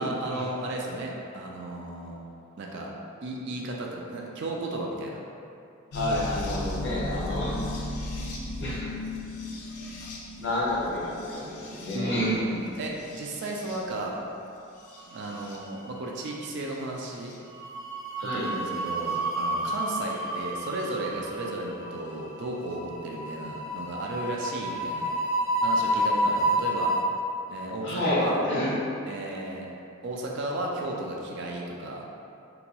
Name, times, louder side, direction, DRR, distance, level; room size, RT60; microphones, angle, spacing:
voice 1, 0.0-2.2 2.6-2.9 3.2-5.2 11.9-14.2 15.1-17.3 18.2-25.1 25.6-26.9 27.5-28.4 29.1-29.7 30.0-32.1, right 2 dB, 55° right, -1 dB, 0.3 m, -34 dB
sound 1, 5.9-14.1 14.8-15.6 16.7-17.4 19.1-19.2 20.9-21.0, left 1 dB, 90° left, 0.4 m, -37 dB
voice 2, 5.9-7.6 8.6-8.9 10.4-12.3 18.2-18.5 27.8-28.8, left 1 dB, 50° left, -7 dB, 0.7 m, -29 dB
sound 2, 15.0-15.7 16.0-16.3 17.5-27.0, right 1 dB, 80° right, 0.9 m, -30 dB
2.9 x 2.2 x 2.9 m, 2.6 s
head